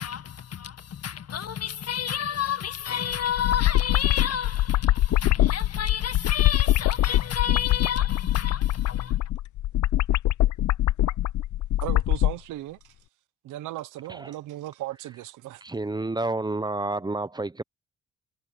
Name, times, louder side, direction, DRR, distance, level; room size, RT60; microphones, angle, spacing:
voice 1, 0.0-9.3, left 9 dB, 55° left, 1.8 m, -31 dB
sound 1, 3.1-12.3, left 14 dB, 70° left, 0.8 m, -23 dB
voice 2, 11.8-12.9 13.4-15.6, right 15 dB, 90° right, 1.1 m, -36 dB
voice 3, 15.6-17.6, right 2 dB, 15° right, 0.9 m, -29 dB
cardioid pair, 90°, 30 cm